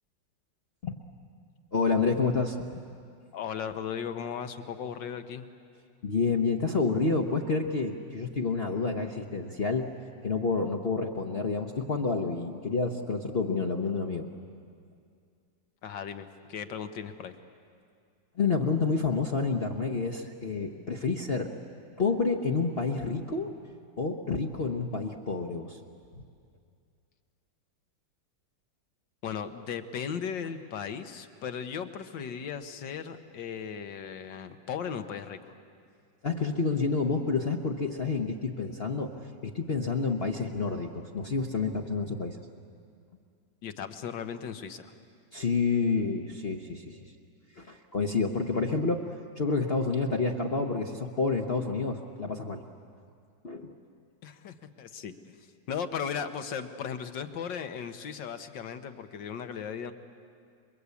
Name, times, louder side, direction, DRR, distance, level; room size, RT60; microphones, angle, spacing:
voice 1, 1.7-2.6 6.0-9.9 10.2-14.3 18.4-21.5 22.0-23.6 24.0-25.8 36.2-39.2 39.4-42.4 45.3-47.0 47.6-49.1 49.4-52.6 53.4-53.8, left 4 dB, 40° left, 2 dB, 1.1 m, -29 dB
voice 2, 3.3-5.5 15.8-17.4 29.2-35.6 43.6-44.9 54.2-59.9, left 7 dB, 75° left, 9 dB, 1.8 m, -37 dB
29.0 x 22.5 x 8.4 m, 2.3 s
omnidirectional pair, 2.0 m